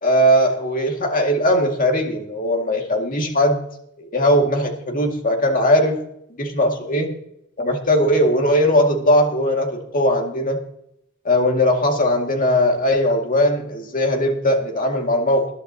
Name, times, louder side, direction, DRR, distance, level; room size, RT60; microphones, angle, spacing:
voice 1, 0.0-3.6 4.0-6.0 6.4-7.2 7.6-10.6 11.2-15.5, equal, 40° left, 3 dB, 2.1 m, -19 dB
20.5 x 11.5 x 2.8 m, 0.76 s
head